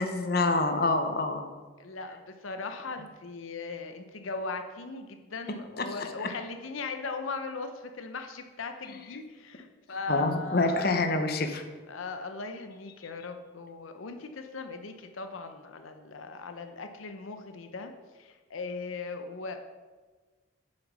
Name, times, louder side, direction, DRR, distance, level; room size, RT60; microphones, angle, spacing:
voice 1, 0.0-1.5 5.8-5.9 6.2-6.3 10.1-11.6, left 3 dB, 50° left, 7 dB, 0.8 m, -27 dB
voice 2, 1.8-10.9 11.9-19.6, left 3 dB, 80° left, 7 dB, 0.7 m, -39 dB
8.1 x 6.4 x 6.1 m, 1.4 s
head